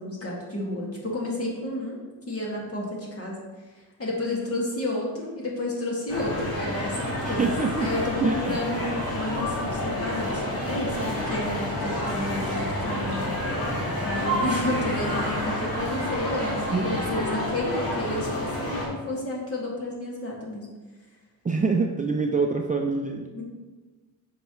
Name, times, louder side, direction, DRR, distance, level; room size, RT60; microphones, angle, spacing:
voice 1, 0.0-2.0 2.3-3.4 3.7-7.5 7.8-13.7 14.0-20.7 23.3-23.4, left 1 dB, 40° left, -3 dB, 2.1 m, -31 dB
sound 1, 6.1-18.9, left 1 dB, 70° left, 2.4 m, -29 dB
voice 2, 7.2-7.9 8.2-8.6 16.7-16.9 21.4-23.3, right 4 dB, 20° right, 2 dB, 0.5 m, -25 dB
8.7 x 5.9 x 3.1 m, 1.3 s
cardioid pair, 115°, 37 cm